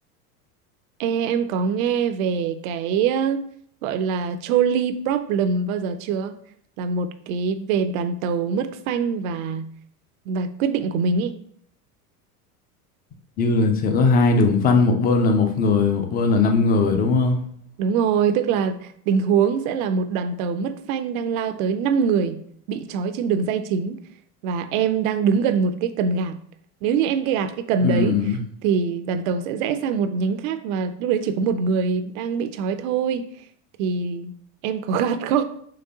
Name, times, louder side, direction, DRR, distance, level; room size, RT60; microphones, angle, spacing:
voice 1, 1.0-3.4 3.8-6.3 6.8-9.7 10.3-11.3 17.8-22.4 22.7-24.0 24.4-26.4 26.8-28.2 28.6-33.2 33.8-34.3 34.6-35.4, right 6 dB, 60° right, 9 dB, 0.5 m, -23 dB
voice 2, 13.4-17.4 27.8-28.4, left 3 dB, 20° left, 5 dB, 0.4 m, -19 dB
3.9 x 3.2 x 2.7 m, 0.63 s
hypercardioid pair, 90°, 48 cm